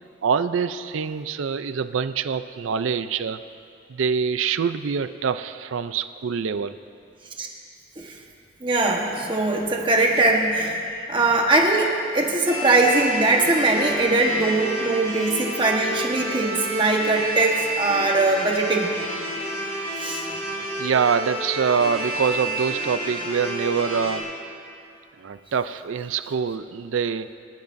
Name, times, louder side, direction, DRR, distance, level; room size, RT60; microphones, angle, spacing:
voice 1, 0.2-3.4 3.9-6.8 20.8-24.3 25.2-27.3, right 6 dB, 85° right, 12 dB, 0.4 m, -25 dB
voice 2, 8.6-18.9 20.0-20.2, right 2 dB, 25° right, 0 dB, 1.2 m, -21 dB
sound 1, 12.5-24.2, right 1 dB, 35° left, 3.5 m, -30 dB
24.5 x 12.0 x 2.6 m, 2.5 s
head